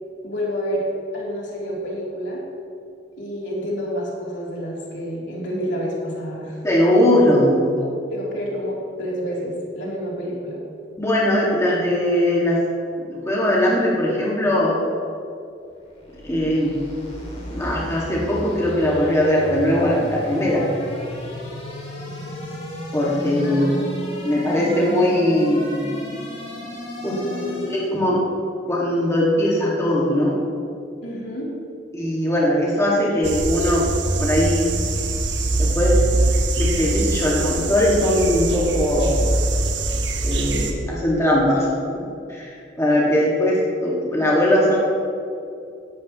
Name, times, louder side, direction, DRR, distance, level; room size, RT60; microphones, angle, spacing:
voice 1, 0.2-0.9 1.1-2.4 3.2-6.6 7.7-10.6 23.4-24.0 27.0-27.5 31.0-31.5, equal, 75° left, -5 dB, 3.4 m, -29 dB
voice 2, 6.6-7.7 11.0-12.6 13.0-14.8 16.2-16.8 17.5-20.6 22.9-23.7 24.2-25.9 27.0-27.2 27.6-28.2 28.7-30.3 31.9-33.9 34.2-34.6 35.6-36.0 36.6-39.2 40.2-41.7 42.3-44.8, left 1 dB, 15° left, -6 dB, 2.1 m, -20 dB
sound 1, 15.8-28.0, equal, 35° left, 2.7 m, -34 dB
sound 2, 33.2-40.7, right 2 dB, 70° right, 1.2 m, -22 dB
17.0 x 11.0 x 3.1 m, 2.5 s
head